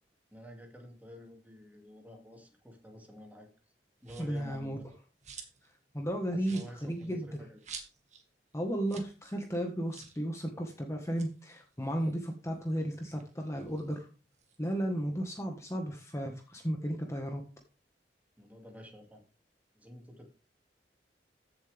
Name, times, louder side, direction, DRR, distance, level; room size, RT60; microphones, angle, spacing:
voice 1, 0.3-3.5 4.0-4.9 6.3-7.6 18.4-19.2 19.7-20.3, equal, 10° right, 2 dB, 2.5 m, -50 dB
sound 1, 4.0-4.4 4.9-5.7 6.0-6.1 6.4-8.3 8.5-8.6 8.8-9.2 9.4-9.5 9.9-10.2 11.0-12.7 13.1-14.6, right 6 dB, 40° right, 2.1 m, -50 dB
voice 2, 4.2-4.8 5.9-7.3 8.5-14.1 14.6-17.4, equal, 15° left, 2 dB, 1.6 m, -34 dB
15.0 x 7.6 x 3.5 m, 0.34 s
head